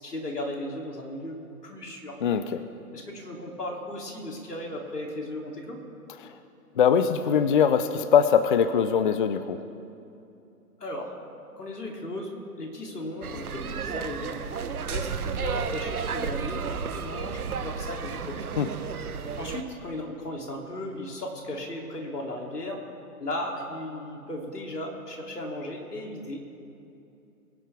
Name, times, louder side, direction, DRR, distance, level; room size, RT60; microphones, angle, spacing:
voice 1, 0.0-1.4 1.6-2.2 2.9-5.8 10.8-11.1 11.6-12.3 12.6-14.4 14.9-15.1 15.3-16.6 16.9-18.5 19.4-22.8 23.2-26.4, left 1 dB, 85° left, 0 dB, 3.1 m, -36 dB
voice 2, 6.8-9.6 18.6-18.7, left 7 dB, 35° left, 11 dB, 0.5 m, -21 dB
sound 1, 13.2-19.6, right 6 dB, 70° right, 1.2 m, -32 dB
24.0 x 11.0 x 3.5 m, 2.7 s
figure-of-eight pair, 130°, 46 cm